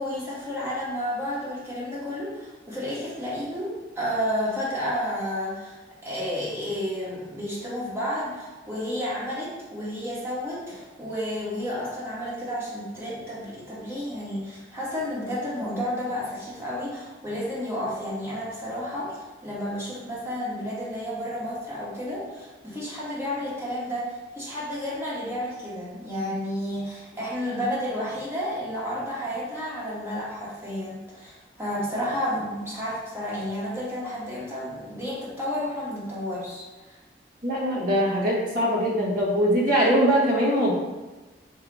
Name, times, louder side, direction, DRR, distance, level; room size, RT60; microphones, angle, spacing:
voice 1, 0.0-37.0, equal, 15° right, -8 dB, 1.3 m, -31 dB
voice 2, 37.4-40.7, equal, 45° right, -4 dB, 1.2 m, -22 dB
3.8 x 2.7 x 4.6 m, 1.2 s
head